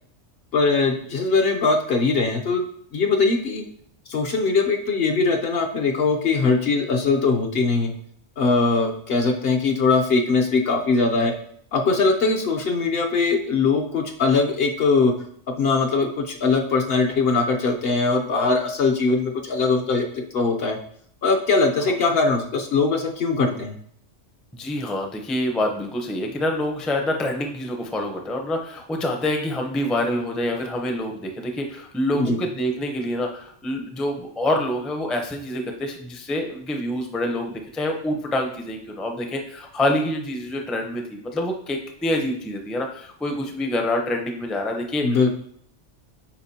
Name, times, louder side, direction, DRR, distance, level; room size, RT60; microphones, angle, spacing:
voice 1, 0.5-2.6 2.9-3.6 4.1-7.9 8.4-11.3 11.7-15.1 15.6-20.1 20.3-20.8 21.2-23.7 32.1-32.4 45.0-45.3, left 4 dB, 60° left, 3 dB, 0.9 m, -21 dB
voice 2, 24.5-45.3, left 1 dB, ahead, 3 dB, 0.5 m, -26 dB
8.6 x 4.9 x 2.8 m, 0.66 s
omnidirectional pair, 1.3 m